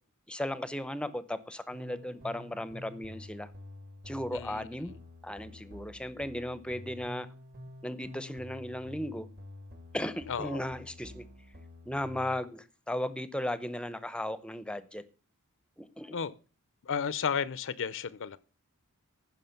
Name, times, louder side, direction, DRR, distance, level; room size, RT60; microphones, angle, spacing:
voice 1, 0.3-3.5 4.1-4.9 5.2-7.3 7.8-9.3 9.9-11.3 11.9-15.0 15.8-16.2, left 1 dB, 5° left, 0.7 m, -36 dB
sound 1, 1.7-12.4, left 1 dB, 45° right, 1.8 m, -49 dB
voice 2, 4.3-4.7 10.3-10.6 16.1-16.3 16.8-18.4, left 6 dB, 60° left, 0.6 m, -33 dB
14.5 x 6.1 x 5.8 m
head